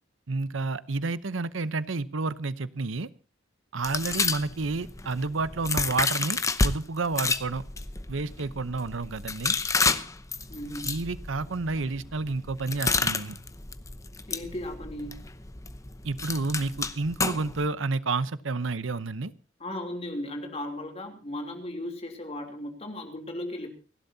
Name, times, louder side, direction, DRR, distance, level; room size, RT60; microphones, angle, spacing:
voice 1, 0.3-3.1 3.7-7.6 8.1-9.6 10.8-13.4 16.0-19.3, right 3 dB, 80° right, 15 dB, 0.9 m, -30 dB
sound 1, 3.8-6.7 7.1-17.7, left 4 dB, 15° left, 0.8 m, -30 dB
voice 2, 4.1-4.4 10.5-10.9 14.3-15.2 19.6-23.7, left 1 dB, 30° left, 4 dB, 3.2 m, -36 dB
30.0 x 12.0 x 2.8 m, 0.34 s
head